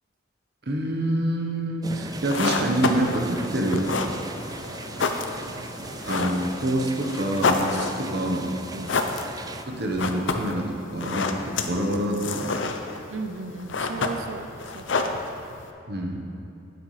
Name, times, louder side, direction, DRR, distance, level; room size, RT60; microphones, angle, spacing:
voice 1, 0.7-3.9 6.1-8.5 9.7-12.6 15.9-16.3, right 1 dB, 60° right, 1 dB, 1.1 m, -26 dB
sound 1, 1.8-9.7, right 3 dB, 20° right, 0.3 m, -38 dB
sound 2, 2.1-15.7, left 4 dB, 75° left, 0.6 m, -30 dB
voice 2, 13.1-15.1, right 4 dB, 85° right, 7 dB, 0.6 m, -36 dB
11.5 x 9.6 x 3.3 m, 2.7 s
head